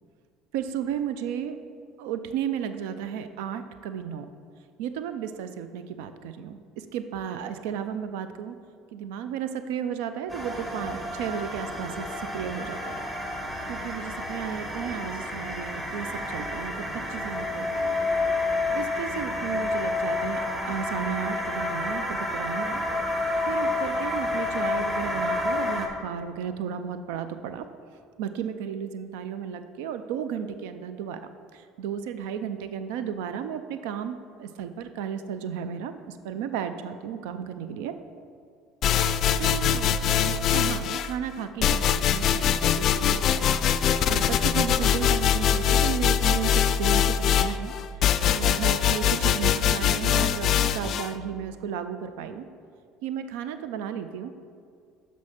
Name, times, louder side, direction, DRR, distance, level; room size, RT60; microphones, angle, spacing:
voice 1, 0.5-1.6 2.0-4.3 4.8-8.6 8.9-12.1 12.3-13.0 13.7-16.7 17.1-17.9 18.7-20.4 20.7-22.9 23.5-27.7 28.2-31.2 31.5-38.0 39.4-47.7 48.2-52.4 53.0-54.3, right 8 dB, 85° right, 10 dB, 0.4 m, -34 dB
sound 1, 10.3-25.9, left 2 dB, 15° right, 1.5 m, -29 dB
sound 2, 38.8-41.1 41.6-51.1, left 9 dB, 55° left, 0.3 m, -23 dB
6.3 x 5.3 x 5.8 m, 2.3 s
supercardioid pair, 95°, 0 cm